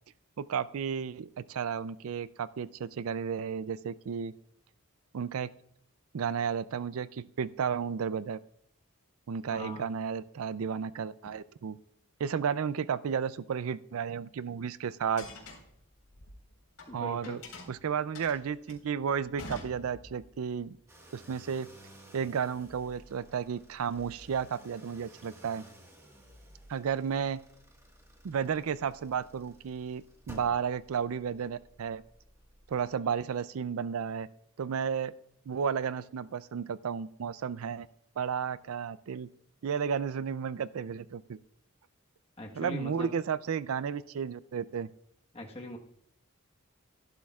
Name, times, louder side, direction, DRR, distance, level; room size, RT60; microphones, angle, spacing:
voice 1, 0.4-4.3 5.1-5.5 6.1-8.4 9.3-11.8 12.2-15.3 16.9-17.4 17.7-20.8 21.1-21.7 22.1-25.6 26.7-27.4 28.2-32.0 32.7-34.3 34.6-35.1 35.5-37.9 38.2-39.3 39.6-41.4 42.6-44.9, right 7 dB, 75° right, 16 dB, 0.4 m, -33 dB
voice 2, 9.5-9.9 16.9-17.4 42.4-43.1 45.3-45.8, left 1 dB, 25° left, 1 dB, 1.3 m, -41 dB
sound 1, 15.2-16.9 17.2-20.3, left 2 dB, 85° left, 4.2 m, -47 dB
sound 2, 20.9-33.3, equal, 10° right, 1.5 m, -55 dB
18.0 x 11.5 x 2.4 m, 0.69 s
head